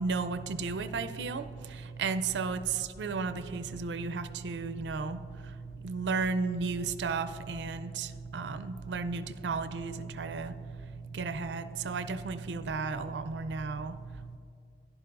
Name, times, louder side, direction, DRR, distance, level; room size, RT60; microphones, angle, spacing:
voice 1, 0.0-14.4, right 4 dB, 75° right, 12 dB, 0.4 m, -34 dB
11.5 x 11.0 x 2.5 m, 2.5 s
head